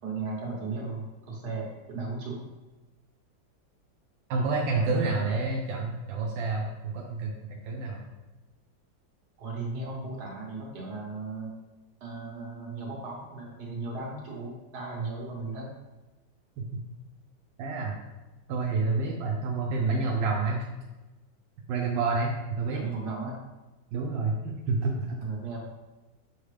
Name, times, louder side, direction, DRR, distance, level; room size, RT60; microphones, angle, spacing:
voice 1, 0.0-2.5 4.7-5.5 9.4-11.5 12.0-15.7 19.7-20.0 22.7-23.4 25.2-25.6, right 3 dB, 60° right, -1 dB, 1.9 m, -36 dB
voice 2, 4.3-8.0 17.6-17.9 18.5-20.6 21.7-22.8 23.9-25.1, right 3 dB, 80° right, -1 dB, 1.4 m, -29 dB
7.1 x 4.6 x 3.3 m, 1.1 s
omnidirectional pair, 2.0 m